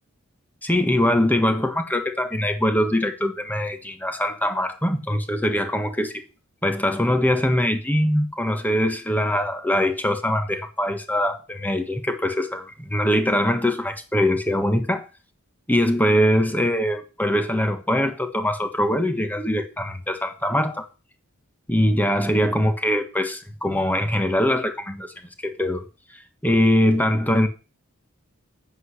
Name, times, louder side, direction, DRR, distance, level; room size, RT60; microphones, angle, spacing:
voice 1, 0.6-6.2 6.6-15.1 15.7-20.8 21.7-25.1 25.4-25.8 26.4-27.5, left 1 dB, 10° left, 1.5 m, -22 dB
9.2 x 8.2 x 6.5 m
head